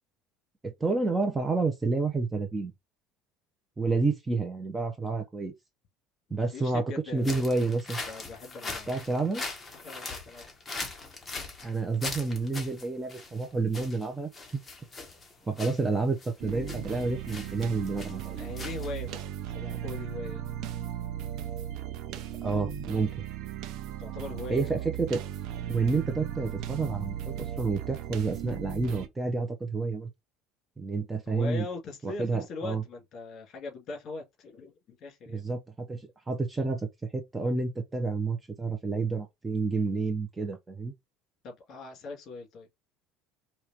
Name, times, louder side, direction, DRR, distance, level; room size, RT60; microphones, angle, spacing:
voice 1, 0.6-2.7 3.8-5.5 6.3-6.9 7.1-8.0 8.9-9.5 11.6-14.6 15.5-18.5 22.4-23.2 24.5-25.2 25.7-30.1 30.8-31.7 32.0-32.8 35.3-40.9, right 3 dB, 10° right, 0.6 m, -29 dB
voice 2, 6.3-7.6 8.1-8.9 9.8-10.5 18.4-19.3 19.5-20.4 24.0-24.7 31.3-35.4 41.4-42.7, left 3 dB, 45° left, 2.3 m, -40 dB
sound 1, 7.2-19.2, left 3 dB, 15° left, 1.3 m, -41 dB
sound 2, 16.4-29.1, right 10 dB, 60° right, 0.7 m, -37 dB
4.9 x 3.0 x 2.9 m
cardioid pair, 140°, 0 cm